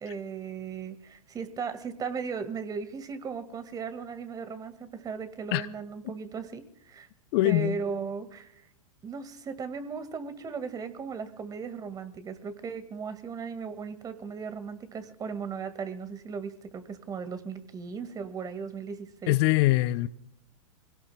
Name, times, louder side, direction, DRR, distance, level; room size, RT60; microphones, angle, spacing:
voice 1, 0.0-7.1 7.4-8.6 9.0-19.4, right 5 dB, 20° right, 2.0 m, -37 dB
voice 2, 7.3-7.8 19.3-20.1, left 18 dB, 45° left, 0.6 m, -23 dB
25.0 x 17.5 x 2.3 m
hypercardioid pair, 105°, 17 cm